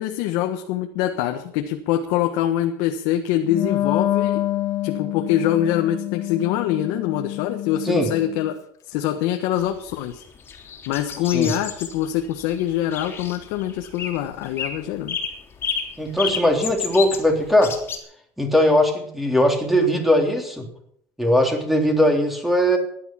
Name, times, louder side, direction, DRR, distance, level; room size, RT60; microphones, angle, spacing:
voice 1, 0.0-4.4 4.8-8.6 8.9-10.2 10.9-15.2 19.8-19.9, left 11 dB, 80° left, 4 dB, 1.4 m, -24 dB
Wind instrument woodwind instrument, 3.4-8.5, left 14 dB, 45° left, 1.2 m, -27 dB
sound 1, 9.7-18.0, left 6 dB, 30° left, 3.2 m, -31 dB
voice 2, 16.0-17.7 18.4-20.7 21.2-22.8, equal, ahead, 3 dB, 3.4 m, -19 dB
16.0 x 11.0 x 5.8 m, 0.68 s
cardioid pair, 125°, 7 cm